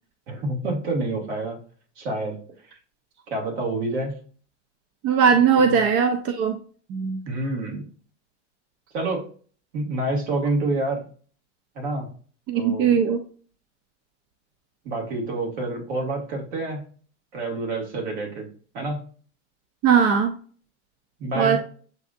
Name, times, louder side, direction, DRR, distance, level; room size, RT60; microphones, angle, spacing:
voice 1, 0.3-1.6 2.0-2.4 3.3-4.2 5.6-5.7 7.2-7.8 8.9-9.2 9.7-11.1 11.8-12.1 12.5-13.0 14.8-16.8 17.3-18.5 18.7-19.0 21.2-21.6, right 2 dB, 65° right, 0 dB, 2.1 m, -27 dB
voice 2, 5.0-6.6 6.9-7.2 12.5-13.2 19.8-20.3 21.4-21.6, right 6 dB, 40° right, 7 dB, 0.5 m, -19 dB
7.5 x 2.6 x 2.5 m, 0.43 s
hypercardioid pair, 110°, 36 cm